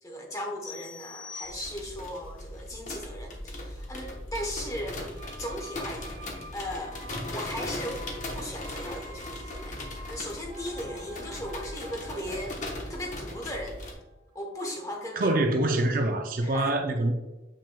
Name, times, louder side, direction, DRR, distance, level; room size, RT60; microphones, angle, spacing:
voice 1, 0.0-5.0 5.4-6.2 6.5-8.0 8.3-12.6 12.9-13.8 14.3-15.4 16.4-16.7, equal, 20° left, 0.9 m, -37 dB
sound 1, 0.6-2.2, left 5 dB, 65° left, 2.1 m, -44 dB
sound 2, 1.4-13.9, left 1 dB, 40° left, 1.0 m, -38 dB
sound 3, 5.1-14.9 15.2-15.3, equal, 30° right, 1.8 m, -48 dB
voice 2, 15.2-17.1, right 2 dB, 45° right, 0.5 m, -25 dB
7.1 x 5.9 x 2.2 m
head